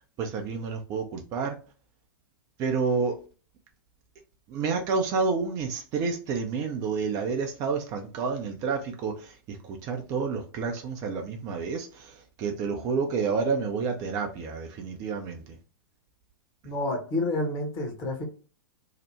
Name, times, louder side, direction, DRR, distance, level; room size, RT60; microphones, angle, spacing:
voice 1, 0.2-1.5 2.6-3.2 4.5-15.6, right 5 dB, 30° right, 0.5 m, -29 dB
voice 2, 16.6-18.2, left 2 dB, 30° left, 1.0 m, -29 dB
2.8 x 2.1 x 3.3 m
figure-of-eight pair, 100°, 12 cm